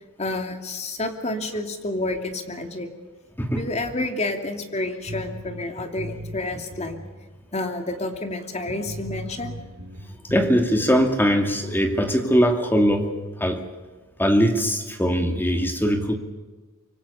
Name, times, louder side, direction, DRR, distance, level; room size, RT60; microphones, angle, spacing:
voice 1, 0.2-2.9 3.6-7.0 7.5-9.6, left 2 dB, 30° left, 5 dB, 2.7 m, -29 dB
sound 1, 5.1-7.2 7.4-7.5 8.1-8.2 8.7-10.6, equal, 85° right, 2.5 m, -37 dB
voice 2, 10.3-13.6 14.2-16.1, equal, 10° left, 5 dB, 2.4 m, -21 dB
25.0 x 24.5 x 7.0 m, 1.3 s
head